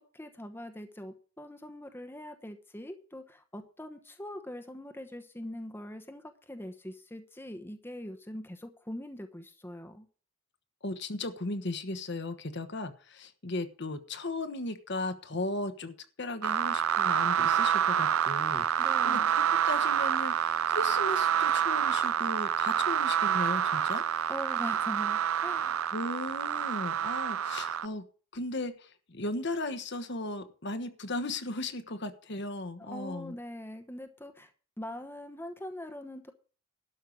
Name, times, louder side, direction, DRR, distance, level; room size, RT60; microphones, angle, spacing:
voice 1, 0.1-10.1 18.8-19.3 24.3-25.9 32.8-34.5 34.8-36.3, left 1 dB, 10° left, 7 dB, 1.0 m, -42 dB
voice 2, 10.8-24.0 25.9-28.0 28.3-33.3, left 2 dB, 55° left, 10 dB, 1.3 m, -36 dB
sound 1, 16.4-27.9, right 9 dB, 80° right, 0.5 m, -28 dB
12.5 x 5.6 x 7.8 m, 0.39 s
head